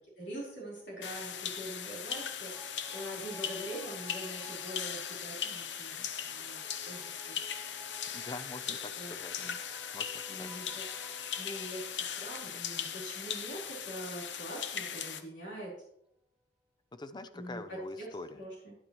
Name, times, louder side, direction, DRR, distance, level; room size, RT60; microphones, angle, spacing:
voice 1, 0.2-7.4 9.0-9.5 9.8-10.0 10.3-10.8 11.4-11.9 12.2-15.8 17.3-17.6 18.3-18.8, right 1 dB, 90° left, -4 dB, 4.0 m, -44 dB
sound 1, 1.0-15.2, left 8 dB, 70° left, 0.7 m, -39 dB
sound 2, 1.9-14.7 15.1-15.2, right 2 dB, 5° left, 1.0 m, -56 dB
voice 2, 8.1-9.4 9.9-10.1 10.4-10.8 16.9-18.4, left 2 dB, 25° left, 11 dB, 0.5 m, -44 dB
10.0 x 9.2 x 3.1 m, 0.74 s
head